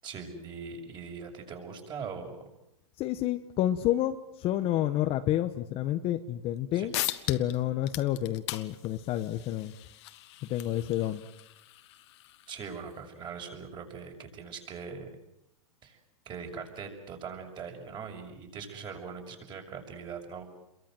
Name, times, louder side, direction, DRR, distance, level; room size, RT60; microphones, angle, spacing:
voice 1, 0.0-2.4 6.7-6.9 12.5-15.1 15.8-16.0 16.2-20.4, right 5 dB, 25° right, 3 dB, 6.7 m, -41 dB
voice 2, 3.0-6.9 7.3-9.7 10.5-11.3, left 13 dB, 30° left, 9 dB, 1.3 m, -29 dB
sound 1, 6.6-6.7 6.9-7.6 7.8-13.0, left 16 dB, 50° left, 2.0 m, -39 dB
30.0 x 23.0 x 7.8 m, 0.85 s
hypercardioid pair, 135°, 19 cm